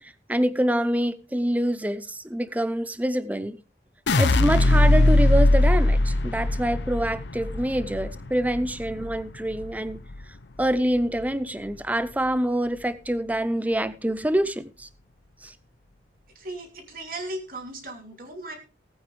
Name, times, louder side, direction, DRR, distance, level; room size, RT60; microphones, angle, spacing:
voice 1, 0.0-3.6 4.2-10.0 10.6-14.9 15.4-15.5, right 1 dB, 10° right, 0.7 m, -26 dB
sound 1, 4.1-10.2 10.6-11.2, left 2 dB, 80° left, 0.8 m, -21 dB
voice 2, 16.4-18.5, right 2 dB, 50° right, 3.0 m, -36 dB
18.5 x 8.8 x 3.4 m
head